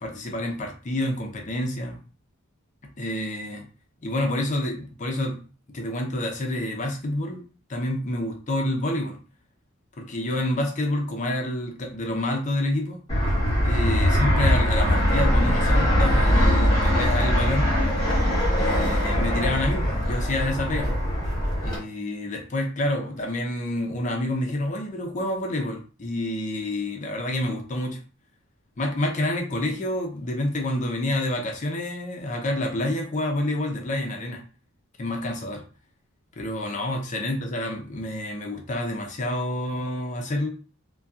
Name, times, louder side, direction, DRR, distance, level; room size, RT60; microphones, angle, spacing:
voice 1, 0.0-2.0 3.0-3.7 4.0-5.4 5.7-7.4 7.7-9.2 10.0-13.0 13.6-17.8 18.5-20.9 21.6-28.0 28.8-34.4 35.0-35.6 36.4-40.5, left 1 dB, 35° left, 2 dB, 0.5 m, -28 dB
Fixed-wing aircraft airplane, 13.1-21.8, equal, 20° left, 1.2 m, -21 dB
2.6 x 2.2 x 2.3 m, 0.37 s
head